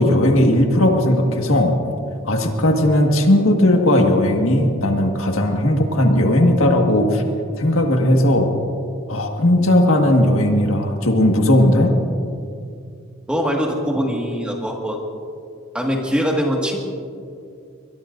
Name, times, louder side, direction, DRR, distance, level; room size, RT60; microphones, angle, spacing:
voice 1, 0.0-1.8 2.3-7.2 7.6-8.5 9.1-11.9, left 1 dB, 75° left, 2 dB, 1.7 m, -16 dB
voice 2, 13.3-15.0 15.7-16.8, equal, 5° right, -1 dB, 1.8 m, -22 dB
23.0 x 21.5 x 2.6 m, 2.4 s
head